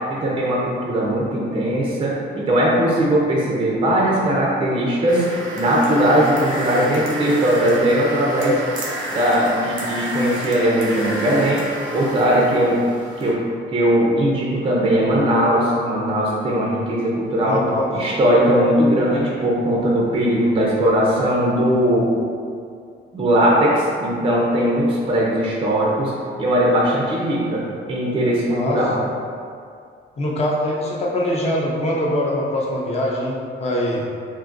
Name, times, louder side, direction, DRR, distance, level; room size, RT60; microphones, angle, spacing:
voice 1, 0.1-8.6 9.1-11.6 11.9-12.8 13.2-13.4 13.7-17.6 17.9-22.1 23.1-26.1 26.4-28.9, equal, 25° right, -4 dB, 0.4 m, -19 dB
sound 1, 5.1-13.3, right 1 dB, 90° right, 0.8 m, -30 dB
voice 2, 17.4-18.1 28.5-29.1 30.2-34.1, left 1 dB, 35° left, -3 dB, 0.5 m, -23 dB
3.7 x 2.5 x 2.5 m, 2.2 s
wide cardioid pair, 175°, 20 cm